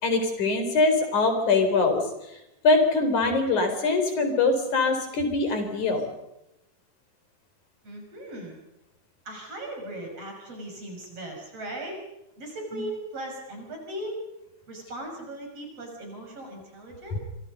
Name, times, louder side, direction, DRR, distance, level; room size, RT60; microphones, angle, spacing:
voice 1, 0.0-2.0 2.6-6.1 12.7-12.8, left 3 dB, 70° left, 6 dB, 5.7 m, -23 dB
voice 2, 7.8-8.6 9.3-12.0 12.4-14.2 14.7-17.2, right 1 dB, 50° right, 2 dB, 7.2 m, -38 dB
28.0 x 25.5 x 5.4 m, 0.88 s
omnidirectional pair, 3.5 m